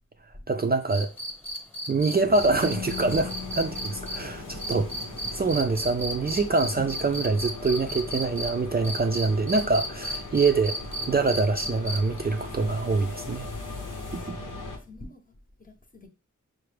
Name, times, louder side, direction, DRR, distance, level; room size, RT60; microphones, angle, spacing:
voice 1, 0.5-1.1 1.9-3.3 3.6-4.9 5.3-10.8 11.1-13.5 14.1-14.4, right 3 dB, 30° right, 0.4 m, -25 dB
sound 1, 0.9-8.5 8.8-12.2 13.8-13.9, right 1 dB, 5° left, 1.0 m, -34 dB
sound 2, 2.3-14.8, left 2 dB, 85° left, 1.0 m, -39 dB
Keyboard (musical), 2.6-5.4, left 9 dB, 55° left, 0.6 m, -41 dB
voice 2, 13.9-16.1, left 2 dB, 30° left, 0.8 m, -48 dB
5.8 x 2.1 x 3.3 m
wide cardioid pair, 60°, 31 cm